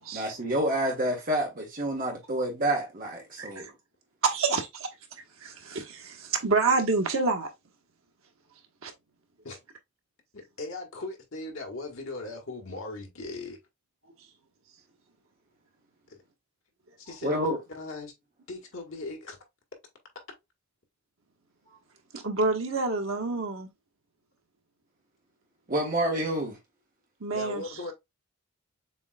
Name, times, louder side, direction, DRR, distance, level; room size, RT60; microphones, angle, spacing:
voice 1, 0.1-3.7 17.2-17.6 25.7-26.6, right 1 dB, 40° right, 1.4 m, -28 dB
voice 2, 3.4-3.7 4.2-4.9 5.4-7.5 8.8-8.9 22.1-23.7 27.2-27.7, right 3 dB, 70° right, 1.2 m, -28 dB
voice 3, 10.3-13.6 16.1-16.2 17.1-17.5 17.7-18.1 18.5-19.4 27.3-27.9, left 2 dB, 65° left, 1.7 m, -38 dB
6.9 x 3.1 x 2.3 m
head